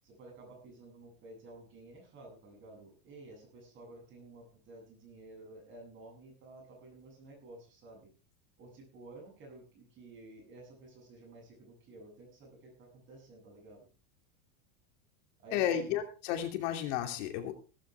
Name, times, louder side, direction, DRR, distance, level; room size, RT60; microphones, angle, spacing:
voice 1, 0.0-8.1 8.6-13.9 15.4-16.0, right 2 dB, 25° right, 1 dB, 8.0 m, -52 dB
voice 2, 15.5-17.5, left 10 dB, 55° left, 5 dB, 2.9 m, -32 dB
16.5 x 14.5 x 3.5 m, 0.34 s
supercardioid pair, 175°, 43 cm